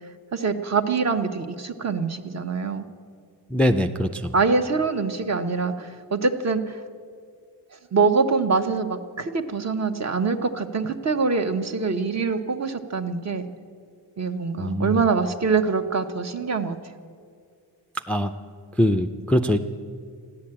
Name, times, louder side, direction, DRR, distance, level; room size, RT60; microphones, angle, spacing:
voice 1, 0.3-2.8 4.3-6.8 7.9-13.5 14.2-16.8, right 4 dB, 40° right, 7 dB, 0.9 m, -24 dB
voice 2, 3.5-4.3 14.6-15.0 18.1-18.3 18.8-19.6, equal, 5° left, 7 dB, 0.3 m, -22 dB
15.0 x 10.5 x 8.7 m, 2.2 s
wide cardioid pair, 160°, 40 cm